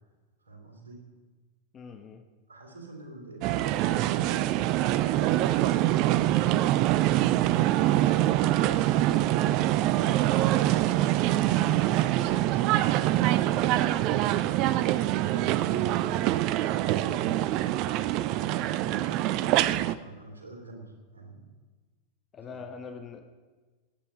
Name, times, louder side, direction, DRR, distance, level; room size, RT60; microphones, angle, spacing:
voice 1, 0.4-1.0 2.5-6.0 18.3-21.5 22.5-22.7, right 2 dB, 70° right, 1 dB, 2.9 m, -45 dB
voice 2, 1.7-2.3 22.3-23.2, left 5 dB, 25° left, 5 dB, 1.1 m, -42 dB
sound 1, 3.4-19.9, right 14 dB, 40° right, 0.4 m, -24 dB
19.0 x 9.0 x 5.1 m, 1.3 s
figure-of-eight pair, 90°, 0 cm